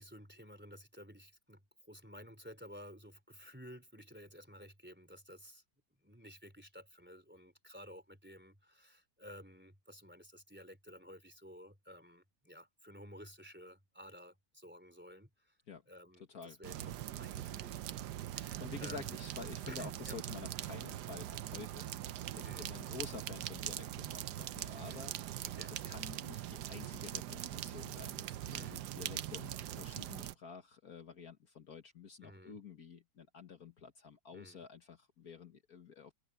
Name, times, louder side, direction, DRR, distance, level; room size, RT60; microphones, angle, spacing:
voice 1, 0.0-5.6 6.0-15.6 15.9-16.8 17.1-18.0 18.3-19.1 19.7-20.2 22.4-22.7 24.7-25.0 25.4-25.7 28.5-28.8 32.2-32.6 34.3-34.6, equal, 5° right, 3.6 m, -54 dB
voice 2, 16.3-16.9 18.6-22.0 22.3-36.1, left 6 dB, 60° left, 2.0 m, -50 dB
sound 1, 16.6-30.3, right 12 dB, 75° right, 1.3 m, -42 dB
open air
omnidirectional pair, 1.8 m